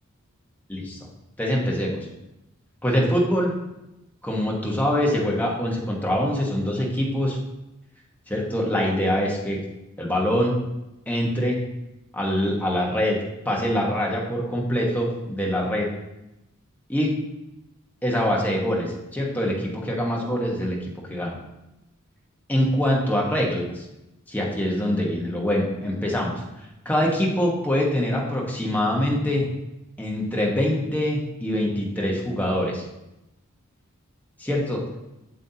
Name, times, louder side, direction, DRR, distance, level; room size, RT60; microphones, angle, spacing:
voice 1, 1.4-2.0 2.8-3.5 4.2-7.4 8.3-9.6 10.0-10.6 11.1-11.6 12.1-13.2 13.4-15.9 16.9-17.2 18.0-20.8 21.1-21.4 22.5-23.8 24.3-29.5 30.0-32.8 34.4-34.8, equal, 10° left, -2 dB, 1.2 m, -24 dB
7.8 x 7.3 x 2.8 m, 0.94 s
head